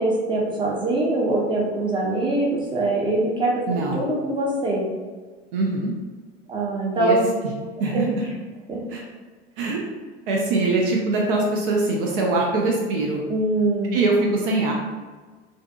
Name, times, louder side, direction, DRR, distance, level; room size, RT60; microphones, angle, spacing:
voice 1, 0.0-3.5 3.9-4.8 6.5-7.3 7.8-8.1 8.7-8.8 13.3-14.0, right 2 dB, 15° right, -4 dB, 0.7 m, -23 dB
voice 2, 3.7-4.0 5.5-5.9 7.0-7.2 7.4-7.5 7.8-8.2 8.9-9.0 9.6-9.8 10.3-13.2 13.9-14.7, right 3 dB, 55° right, -1 dB, 0.5 m, -22 dB
2.5 x 2.5 x 2.2 m, 1.4 s
figure-of-eight pair, 75°, 33 cm